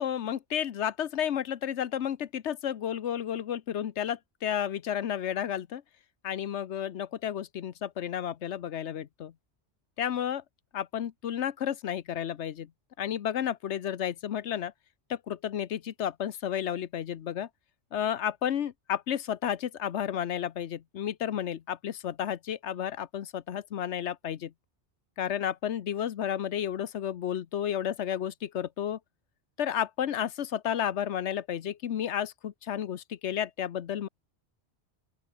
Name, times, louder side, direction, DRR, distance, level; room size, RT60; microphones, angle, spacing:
voice 1, 0.0-5.8 6.2-9.3 10.0-10.4 10.7-12.7 13.0-14.7 15.1-17.5 17.9-24.5 25.2-29.0 29.6-34.1, left 9 dB, 75° left, 1.1 m, -32 dB
open air
omnidirectional pair, 1.2 m